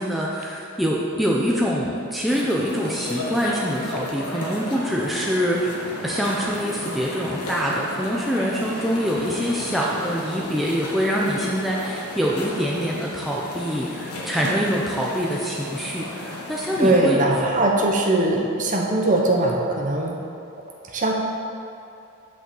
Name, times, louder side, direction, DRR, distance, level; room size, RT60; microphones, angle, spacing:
voice 1, 0.0-17.2 18.3-18.5, equal, ahead, -5 dB, 0.5 m, -25 dB
sound 1, 2.3-17.0, left 1 dB, 85° left, 1.3 m, -34 dB
voice 2, 16.8-20.2 20.9-21.1, right 2 dB, 35° right, 0 dB, 0.8 m, -20 dB
6.2 x 5.4 x 6.9 m, 2.6 s
head